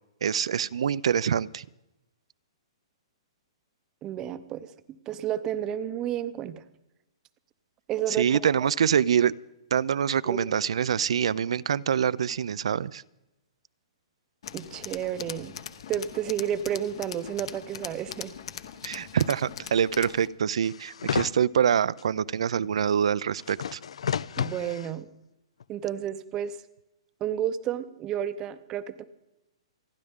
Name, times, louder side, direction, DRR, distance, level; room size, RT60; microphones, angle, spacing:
voice 1, 0.2-1.6 8.1-9.3 9.7-13.0 18.8-23.8, right 8 dB, 75° right, 19 dB, 0.4 m, -25 dB
voice 2, 4.0-4.7 5.1-6.6 7.9-8.5 10.2-10.4 14.5-15.5 15.9-18.3 24.4-25.1 25.7-26.6 27.2-29.0, right 10 dB, 20° right, 13 dB, 0.6 m, -31 dB
Tools, 14.4-20.3, left 9 dB, 55° left, 1.1 m, -41 dB
sound 1, 20.6-21.3 22.0-22.1 23.4-24.9 25.6-25.7, left 7 dB, 85° left, 0.4 m, -31 dB
28.0 x 11.0 x 3.6 m, 0.92 s
hypercardioid pair, 165°, 3 cm